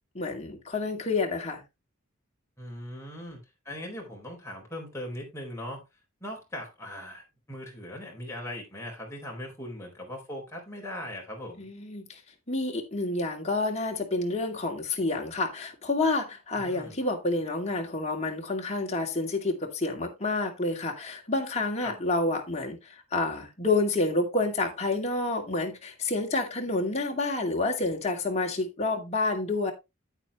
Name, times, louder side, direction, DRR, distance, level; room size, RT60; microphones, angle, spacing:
voice 1, 0.2-1.6 11.6-12.2 12.5-29.7, left 2 dB, 30° left, 2.3 m, -29 dB
voice 2, 2.6-5.8 6.2-11.7 16.6-17.0 21.8-21.9, left 1 dB, 15° left, 4.1 m, -40 dB
9.3 x 8.8 x 3.1 m
head